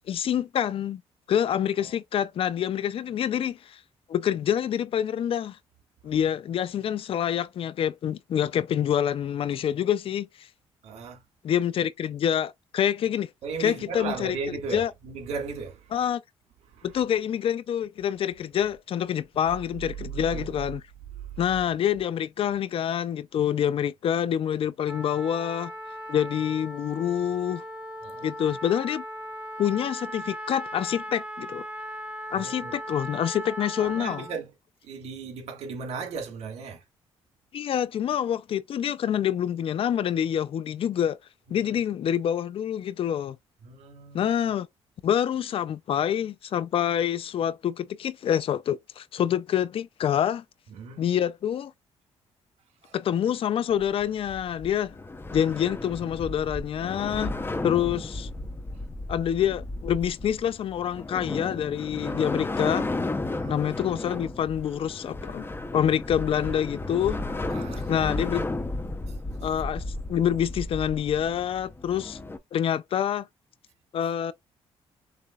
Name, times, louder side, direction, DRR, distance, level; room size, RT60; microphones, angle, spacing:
voice 1, 0.1-1.0 1.3-3.8 4.1-5.6 6.0-10.5 11.4-13.3 13.6-14.4 14.7-14.9 15.9-16.2 16.8-20.8 21.4-25.7 26.1-27.6 28.2-29.0 29.6-31.6 32.3-34.3 37.5-41.2 41.5-43.4 44.1-44.7 45.0-50.4 51.0-51.7 52.9-54.9 55.3-57.3 57.6-58.3 59.1-62.9 63.4-65.5 65.7-67.2 67.9-68.5 69.4-69.8 70.1-72.2 72.5-73.3 73.9-74.3, left 9 dB, 55° left, 0.4 m, -26 dB
voice 2, 10.8-11.2 13.4-15.8 16.7-16.8 20.3-20.4 28.0-28.3 32.3-32.7 33.8-34.5 34.9-36.8 41.5-41.8 43.6-44.2 50.7-51.0 52.8-52.9 63.2-63.6 67.5-67.9, right 5 dB, 75° right, 1.7 m, -36 dB
Trumpet, 24.9-34.4, equal, 10° right, 1.6 m, -38 dB
Icebreaker mixdown, 53.7-72.4, left 2 dB, 20° left, 0.7 m, -34 dB
6.7 x 2.8 x 2.3 m
cardioid pair, 85°, 11 cm